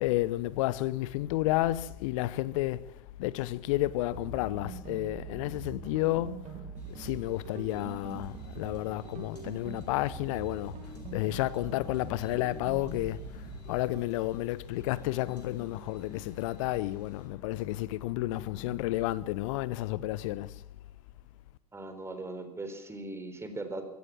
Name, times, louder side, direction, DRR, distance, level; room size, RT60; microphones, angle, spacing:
voice 1, 0.0-2.9 3.2-6.5 6.9-10.7 11.1-13.2 13.7-20.5, left 17 dB, 55° left, 1.0 m, -31 dB
sound 1, 4.1-14.1, right 7 dB, 35° right, 3.0 m, -44 dB
sound 2, 6.8-17.3, left 1 dB, 90° left, 6.4 m, -54 dB
sound 3, 10.7-18.8, left 2 dB, 5° left, 2.6 m, -54 dB
voice 2, 21.7-23.8, right 2 dB, 15° right, 4.3 m, -39 dB
23.5 x 17.0 x 7.5 m
figure-of-eight pair, 85°, 20 cm